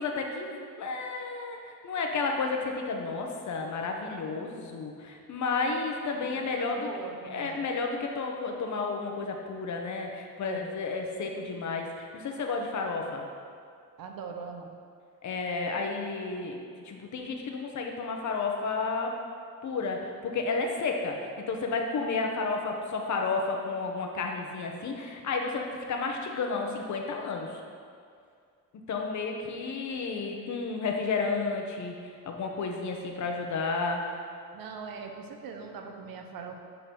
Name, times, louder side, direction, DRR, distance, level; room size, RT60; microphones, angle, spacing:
voice 1, 0.0-6.9 7.2-13.2 15.2-16.6 16.8-19.1 19.6-21.2 21.4-27.5 28.9-32.0 32.3-34.0, left 4 dB, 55° left, 2 dB, 0.9 m, -32 dB
voice 2, 6.1-7.7 10.4-10.7 14.0-14.7 34.5-36.5, right 5 dB, 80° right, 3 dB, 0.8 m, -41 dB
6.9 x 3.9 x 5.8 m, 2.2 s
cardioid pair, 145°, 34 cm